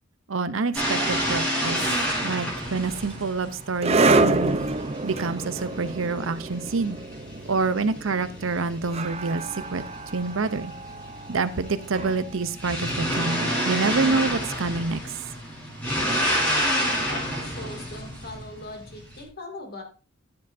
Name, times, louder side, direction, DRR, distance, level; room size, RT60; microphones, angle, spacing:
voice 1, 0.3-1.9 2.2-4.6 5.0-7.0 7.5-9.8 10.1-10.7 11.3-15.0, right 4 dB, 75° right, 13 dB, 0.8 m, -27 dB
sound 1, 0.7-19.2, equal, 5° left, 4.5 m, -30 dB
sound 2, 2.6-13.8, right 3 dB, 30° right, 0.7 m, -28 dB
voice 2, 16.2-16.6 16.9-19.8, left 2 dB, 50° left, 2 dB, 2.5 m, -40 dB
13.5 x 7.7 x 2.7 m, 0.37 s
head